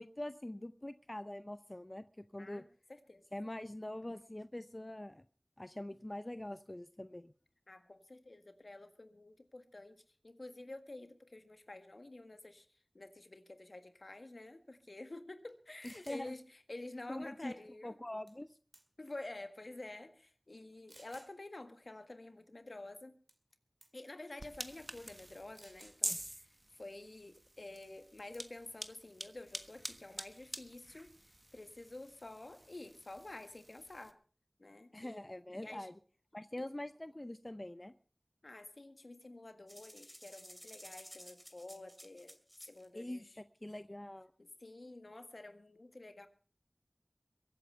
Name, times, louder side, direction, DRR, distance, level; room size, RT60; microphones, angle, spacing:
voice 1, 0.0-2.6 3.3-5.2 5.6-7.3 15.8-16.4 17.1-18.6 34.9-35.9 36.3-37.9 42.9-44.3, left 1 dB, 35° left, 11 dB, 0.7 m, -44 dB
voice 2, 2.4-3.2 7.7-10.0 10.2-17.9 19.0-23.1 23.9-34.2 34.6-35.2 35.5-35.9 38.4-42.4 42.6-43.4 44.4-46.3, left 2 dB, 75° left, 8 dB, 1.7 m, -50 dB
sound 1, 15.5-15.6 15.8-16.2 18.3-18.5 18.7-19.2 19.9-20.0 20.9-21.3 23.3-23.5 23.8-24.1 25.5-26.0 27.8-28.0 28.3-28.7, right 1 dB, 55° right, 2.5 m, -59 dB
sound 2, 24.4-34.1, right 1 dB, 30° right, 1.4 m, -47 dB
sound 3, 39.7-42.9, equal, 5° left, 2.6 m, -54 dB
22.5 x 8.5 x 5.8 m, 0.44 s
wide cardioid pair, 40°, 0 cm